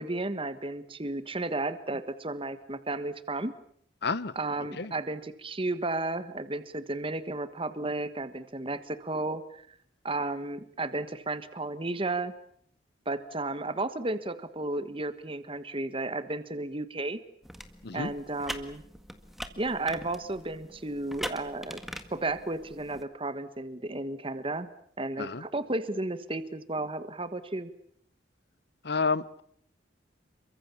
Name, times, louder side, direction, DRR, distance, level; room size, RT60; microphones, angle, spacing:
voice 1, 0.0-3.5 4.3-9.7 10.0-12.3 13.1-17.2 17.9-18.8 19.6-21.8 22.1-24.7 25.0-27.7, right 2 dB, 30° right, 12 dB, 1.4 m, -33 dB
voice 2, 4.0-4.3 4.8-4.9 17.8-18.1 25.2-25.4 28.8-29.4, left 4 dB, 60° left, 18 dB, 1.0 m, -30 dB
sound 1, 17.4-23.0, equal, ahead, 1.7 m, -42 dB
28.5 x 23.5 x 7.1 m, 0.64 s
head